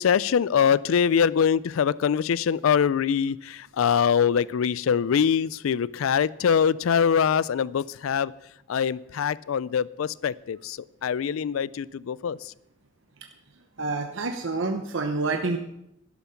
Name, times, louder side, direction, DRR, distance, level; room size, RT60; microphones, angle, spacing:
voice 1, 0.0-8.3 8.7-12.5, left 7 dB, 90° left, 0.4 m, -23 dB
voice 2, 13.8-15.6, right 3 dB, 65° right, 1.0 m, -27 dB
12.0 x 12.0 x 5.7 m
head